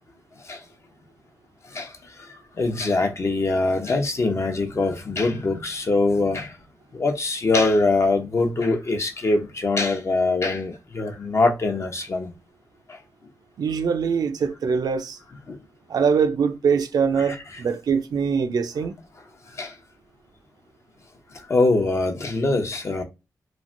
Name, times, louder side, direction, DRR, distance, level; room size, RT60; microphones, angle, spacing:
voice 1, 2.6-6.5 6.9-12.3 15.5-15.6 17.3-17.4 19.6-19.7 21.5-23.0, left 3 dB, 45° left, 0.7 m, -23 dB
voice 2, 13.6-15.2 15.9-18.9, right 6 dB, 90° right, 0.5 m, -23 dB
3.1 x 2.5 x 2.5 m
wide cardioid pair, 105°, 7 cm